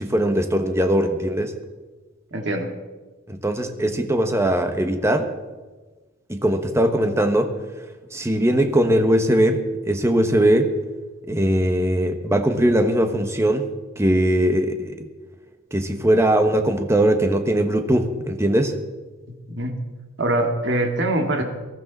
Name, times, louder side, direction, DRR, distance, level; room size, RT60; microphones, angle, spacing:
voice 1, 0.0-1.5 3.3-5.3 6.3-7.5 8.1-9.6 9.9-10.7 11.3-13.7 14.0-15.0 15.7-18.7, right 1 dB, 15° right, 6 dB, 1.1 m, -20 dB
voice 2, 2.3-2.7 19.3-19.8 20.2-21.4, right 1 dB, 60° right, 3 dB, 2.0 m, -23 dB
18.5 x 13.5 x 4.1 m, 1.3 s
head